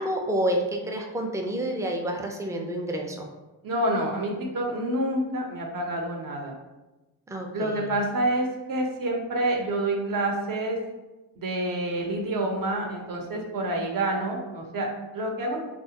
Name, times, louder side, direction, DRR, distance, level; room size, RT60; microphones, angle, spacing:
voice 1, 0.0-3.3 7.3-7.9, right 1 dB, 5° right, 2 dB, 0.4 m, -29 dB
voice 2, 3.6-6.6 7.5-10.8 11.4-14.9 15.1-15.6, right 1 dB, 45° right, 1 dB, 0.7 m, -28 dB
2.5 x 2.2 x 2.8 m, 1.1 s
supercardioid pair, 55°, 46 cm